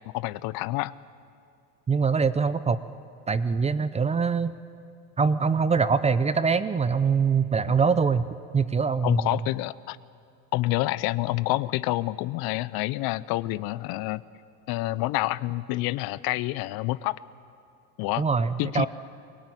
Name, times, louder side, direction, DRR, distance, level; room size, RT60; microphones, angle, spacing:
voice 1, 0.1-0.9 9.0-10.0 10.5-14.2 14.7-17.2 18.0-18.2 18.6-18.9, left 18 dB, 65° left, 18 dB, 0.7 m, -28 dB
voice 2, 1.9-2.8 3.3-4.5 5.2-8.3 8.5-9.4 18.2-18.9, right 5 dB, 15° right, 14 dB, 0.5 m, -23 dB
23.0 x 18.0 x 9.8 m, 2.4 s
cardioid pair, 125°, 40 cm